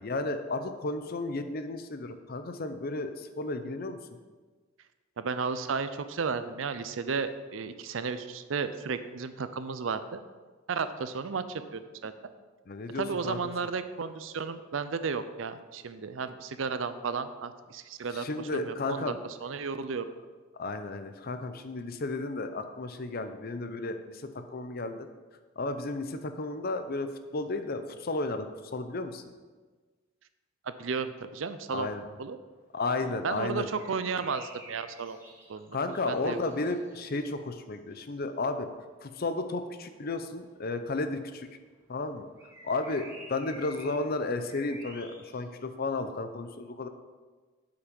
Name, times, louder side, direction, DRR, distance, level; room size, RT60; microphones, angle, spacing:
voice 1, 0.0-4.0 12.7-13.4 18.1-19.2 20.6-24.2 24.5-25.1 25.6-28.5 28.7-29.2 31.7-32.1 32.7-33.7 35.7-38.7 39.0-41.5 41.9-42.3 42.6-46.9, left 2 dB, 50° left, 9 dB, 0.6 m, -33 dB
voice 2, 5.2-10.2 10.7-12.1 12.9-19.1 19.4-20.1 30.6-31.9 32.2-32.4 33.0-35.2 35.5-35.8 36.1-36.7, right 5 dB, 80° right, 11 dB, 0.5 m, -33 dB
sound 1, 32.6-38.3 38.7-38.8 39.1-39.7 40.0-41.5 41.9-45.4, right 1 dB, 15° right, 1.9 m, -51 dB
8.2 x 5.8 x 5.3 m, 1.4 s
head